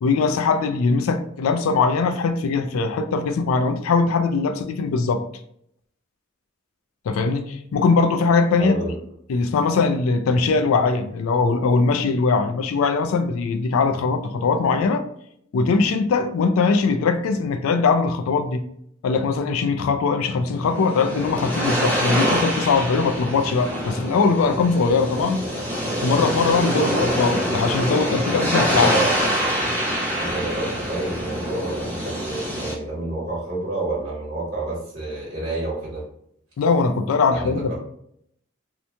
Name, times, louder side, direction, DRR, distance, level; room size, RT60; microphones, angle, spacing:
voice 1, 0.0-5.2 7.1-8.8 9.3-15.0 15.5-18.6 19.0-25.5 26.0-28.9 36.6-37.8, left 4 dB, 90° left, 8 dB, 0.3 m, -21 dB
voice 2, 8.6-8.9 28.7-29.1 30.2-36.0 37.3-37.8, right 2 dB, 35° right, -6 dB, 1.1 m, -29 dB
sound 1, 20.5-32.7, equal, 10° left, 0.7 m, -25 dB
2.9 x 2.2 x 2.7 m, 0.70 s
head